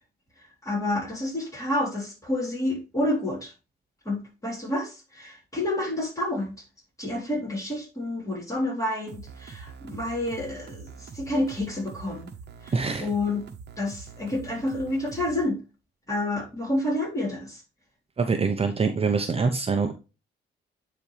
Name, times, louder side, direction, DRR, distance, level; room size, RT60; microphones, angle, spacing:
voice 1, 0.6-3.5 4.1-6.6 7.0-12.3 12.6-13.5 13.8-15.6 16.1-17.6, left 1 dB, 15° left, -2 dB, 3.8 m, -29 dB
sound 1, 9.1-15.5, right 6 dB, 60° right, 1.1 m, -44 dB
voice 2, 12.7-13.1 18.2-19.9, right 4 dB, 30° right, 6 dB, 0.8 m, -24 dB
9.7 x 4.3 x 3.3 m, 0.30 s
cardioid pair, 90°, 20 cm